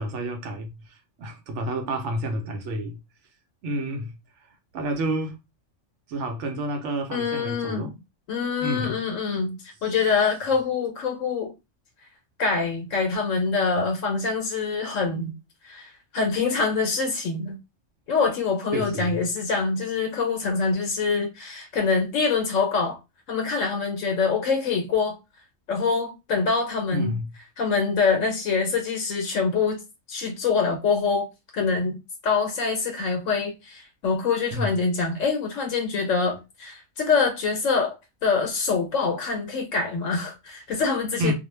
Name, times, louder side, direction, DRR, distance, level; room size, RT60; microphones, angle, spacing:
voice 1, 0.0-3.0 3.6-4.1 4.7-5.4 6.1-7.9 8.6-9.0 9.8-9.9 18.7-19.2 26.9-27.3 34.5-34.7 41.2-41.3, right 1 dB, 70° right, 0.9 m, -29 dB
voice 2, 7.1-7.9 8.3-11.5 12.4-15.3 15.6-17.6 18.1-23.0 23.3-25.2 25.7-27.1 27.6-29.8 30.1-31.3 31.5-32.0 32.2-38.0 38.2-41.3, left 4 dB, 80° left, 1.0 m, -25 dB
2.4 x 2.1 x 3.1 m
omnidirectional pair, 1.3 m